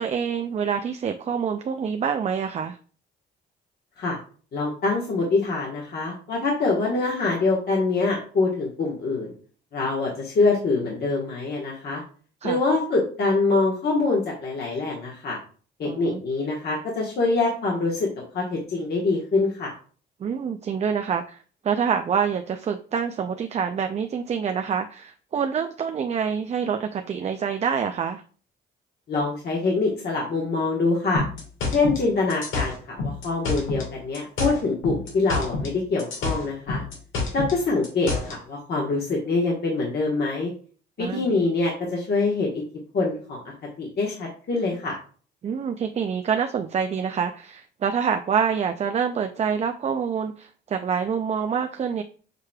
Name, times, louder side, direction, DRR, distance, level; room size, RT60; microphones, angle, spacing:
voice 1, 0.0-2.8 12.4-12.6 15.8-16.2 20.2-28.2 41.0-41.2 45.4-52.0, right 7 dB, 35° right, 6 dB, 0.3 m, -26 dB
voice 2, 4.5-9.3 9.7-12.0 12.4-15.4 15.8-18.1 18.3-19.7 29.1-31.2 31.7-36.8 37.3-40.5 41.0-42.6 42.9-43.4 43.8-45.0, left 3 dB, 55° left, -3 dB, 1.2 m, -24 dB
sound 1, 31.1-33.9 34.1-35.7 36.0-38.4, left 3 dB, 85° left, 1.6 m, -28 dB
6.6 x 3.1 x 2.2 m, 0.41 s
cardioid pair, 90°, 20 cm